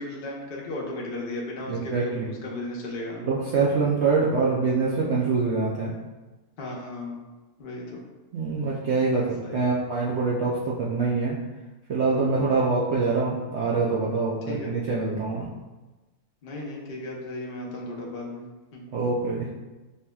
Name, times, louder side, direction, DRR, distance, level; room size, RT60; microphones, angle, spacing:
voice 1, 0.0-3.2 6.6-7.2 7.6-8.0 9.1-9.7 12.2-12.6 14.5-14.7 16.4-18.4 18.7-18.8, left 1 dB, 45° left, -2 dB, 0.8 m, -35 dB
voice 2, 1.7-2.3 3.2-5.9 8.3-11.4 11.9-15.5 18.9-19.5, right 4 dB, 65° right, -5 dB, 0.7 m, -25 dB
5.4 x 2.9 x 2.3 m, 1.1 s
omnidirectional pair, 1.7 m